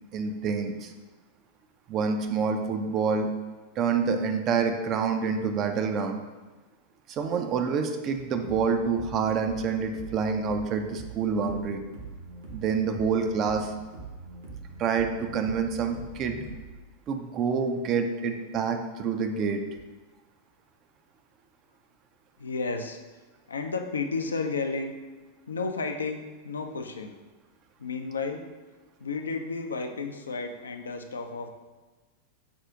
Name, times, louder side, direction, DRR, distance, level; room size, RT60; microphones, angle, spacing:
voice 1, 0.1-0.9 1.9-3.3 3.8-6.2 7.1-11.8 12.5-13.7 14.8-16.4 17.1-19.6, right 5 dB, 35° right, 5 dB, 0.4 m, -27 dB
sound 1, 8.2-16.7, right 3 dB, 65° right, 0.9 m, -43 dB
voice 2, 22.4-23.0 23.5-24.9 25.5-27.1 27.8-28.4 29.0-31.5, left 4 dB, 70° left, 5 dB, 0.4 m, -32 dB
5.8 x 2.4 x 3.7 m, 1.3 s
figure-of-eight pair, 90°, 0 cm